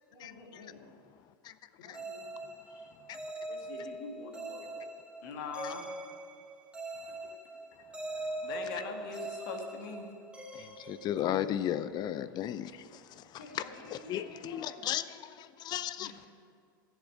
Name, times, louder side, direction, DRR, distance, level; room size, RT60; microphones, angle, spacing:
voice 1, 0.1-0.8 1.8-2.3 13.4-14.9, left 2 dB, 90° left, -5 dB, 3.3 m, -50 dB
sound 1, 1.9-11.7, right 2 dB, 10° right, 1.7 m, -42 dB
voice 2, 3.5-4.9 5.2-5.9 7.1-7.2 8.4-10.1 16.0-16.2, left 5 dB, 65° left, 4 dB, 1.7 m, -42 dB
voice 3, 10.5-13.2 13.9-15.0 15.3-16.3, left 11 dB, 40° left, 14 dB, 0.5 m, -35 dB
11.5 x 7.3 x 7.6 m, 2.2 s
hypercardioid pair, 95°, 11 cm